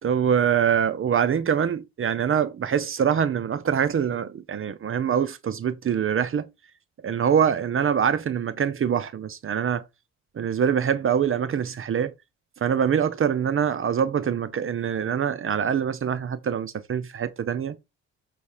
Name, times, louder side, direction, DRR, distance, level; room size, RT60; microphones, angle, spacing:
voice 1, 0.0-6.5 7.0-9.8 10.4-12.1 12.6-17.8, right 8 dB, 45° right, 0.8 m, -24 dB
8.1 x 3.5 x 4.8 m
cardioid pair, 90°, 30 cm